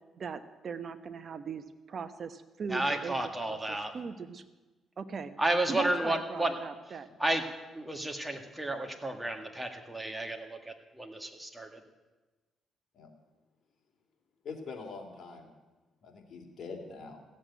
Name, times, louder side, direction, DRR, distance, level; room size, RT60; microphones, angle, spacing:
voice 1, 0.2-3.1 3.5-3.6 3.9-4.4 5.0-5.3 5.7-7.1, right 5 dB, 50° right, 11 dB, 1.0 m, -39 dB
voice 2, 2.7-3.9 5.4-6.5 7.2-7.4 7.7-11.8, right 1 dB, 10° right, 5 dB, 1.8 m, -32 dB
voice 3, 14.4-15.5 16.0-17.2, left 4 dB, 55° left, 1 dB, 2.9 m, -43 dB
15.5 x 7.6 x 9.3 m, 1.2 s
cardioid pair, 90°, 0 cm